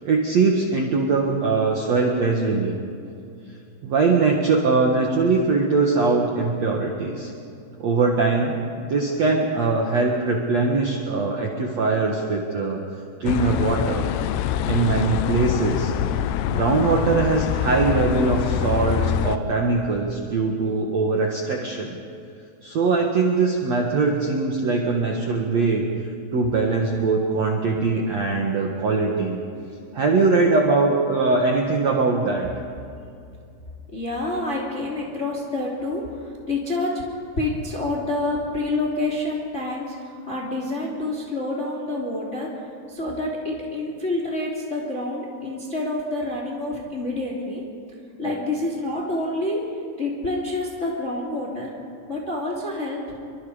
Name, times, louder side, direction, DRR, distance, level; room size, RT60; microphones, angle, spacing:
voice 1, 0.0-2.7 3.8-7.3 7.8-12.8 13.2-14.0 14.7-15.9 16.5-22.0 22.6-25.9 26.3-29.4 29.9-32.5, right 3 dB, 55° right, 0 dB, 2.2 m, -21 dB
sound 1, 13.3-19.4, left 10 dB, 90° left, 2.9 m, -25 dB
voice 2, 33.9-37.0 37.4-42.5 42.9-47.6 48.2-49.6 50.0-51.7 52.1-53.0, left 2 dB, 20° left, -2 dB, 2.9 m, -27 dB
29.0 x 24.5 x 5.1 m, 2.5 s
omnidirectional pair, 4.9 m